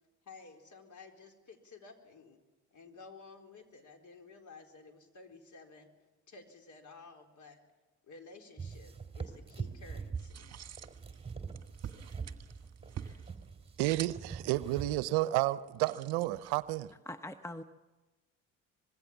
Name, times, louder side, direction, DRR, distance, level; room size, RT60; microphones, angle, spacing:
voice 1, 0.2-2.4 2.7-5.9 6.3-7.6 8.1-10.5, left 4 dB, 45° left, 4.2 m, -53 dB
sound 1, 8.6-15.1, right 5 dB, 15° right, 3.0 m, -43 dB
sound 2, 10.2-16.9, right 9 dB, 35° right, 1.7 m, -49 dB
voice 2, 13.8-16.9, right 17 dB, 65° right, 0.8 m, -31 dB
voice 3, 17.1-17.6, left 1 dB, 5° left, 1.0 m, -44 dB
25.0 x 21.0 x 7.3 m
hypercardioid pair, 60°, 42 cm